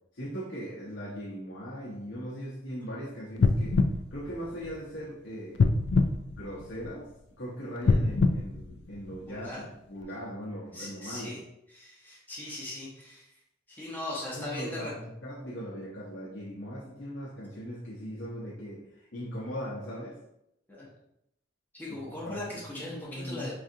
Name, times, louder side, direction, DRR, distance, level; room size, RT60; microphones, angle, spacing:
voice 1, 0.1-3.8 4.1-5.6 6.3-7.1 7.4-11.4 14.3-20.2 21.9-23.6, equal, 90° left, -5 dB, 0.8 m, -39 dB
sound 1, 3.4-5.0 5.6-7.1 7.8-9.5 10.0-10.1, left 3 dB, 65° left, 0.3 m, -26 dB
voice 2, 9.3-9.6 10.7-11.4 11.7-13.3 13.7-14.9 20.7-20.9 21.7-23.6, left 2 dB, 10° left, -6 dB, 0.8 m, -39 dB
4.7 x 2.5 x 2.7 m, 0.81 s
head